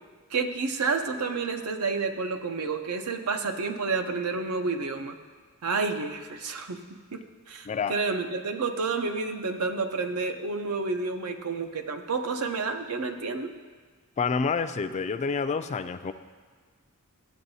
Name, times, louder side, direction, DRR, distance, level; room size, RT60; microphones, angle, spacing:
voice 1, 0.3-5.2 5.6-6.8 7.1-13.5, right 4 dB, 80° right, 6 dB, 0.7 m, -30 dB
voice 2, 7.7-8.0 14.2-16.1, left 5 dB, 30° left, 11 dB, 0.3 m, -28 dB
14.0 x 7.8 x 2.7 m, 1.5 s
head